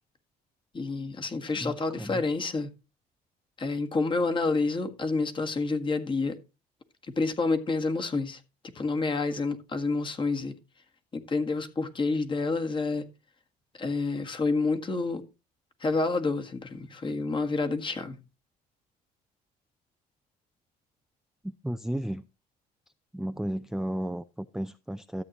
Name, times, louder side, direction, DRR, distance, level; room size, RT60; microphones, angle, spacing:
voice 1, 0.7-2.7 3.6-6.4 7.2-10.5 11.1-13.1 13.8-15.2 15.8-18.2, left 3 dB, 30° left, 1.7 m, -28 dB
voice 2, 1.6-2.2 21.4-22.2 23.1-25.2, right 1 dB, 5° right, 0.4 m, -33 dB
13.5 x 8.4 x 3.0 m
cardioid pair, 110°, 17 cm